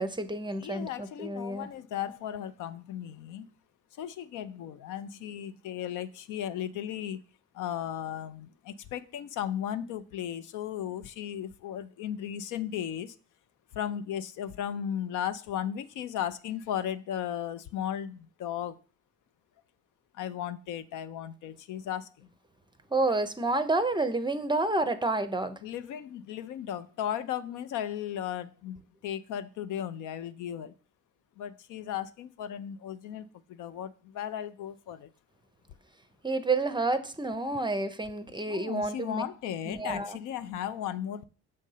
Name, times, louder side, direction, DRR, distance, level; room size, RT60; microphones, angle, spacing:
voice 1, 0.0-1.7 22.9-25.6 36.2-39.2 39.7-40.2, right 2 dB, 15° right, 0.6 m, -29 dB
voice 2, 0.5-3.5 4.0-7.2 7.5-13.1 13.7-18.8 20.2-22.3 25.6-30.7 31.4-35.1 38.5-41.2, left 10 dB, 65° left, 0.5 m, -36 dB
6.4 x 2.7 x 5.5 m
hypercardioid pair, 50°, 34 cm